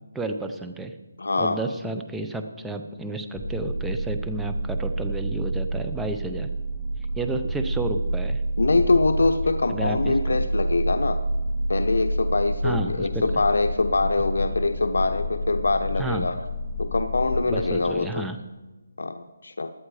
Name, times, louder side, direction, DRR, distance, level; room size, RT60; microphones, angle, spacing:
voice 1, 0.1-0.9 1.4-6.5 7.1-8.4 9.7-10.1 12.6-13.2 16.0-16.3 17.4-18.4, right 2 dB, 5° right, 6 dB, 0.7 m, -31 dB
voice 2, 1.2-1.6 8.6-11.2 11.7-16.4 16.8-18.3 19.0-19.7, left 3 dB, 80° left, 7 dB, 0.8 m, -24 dB
sound 1, 3.3-17.8, right 1 dB, 10° left, 2.8 m, -28 dB
17.0 x 11.0 x 4.9 m, 1.1 s
hypercardioid pair, 170°, 0 cm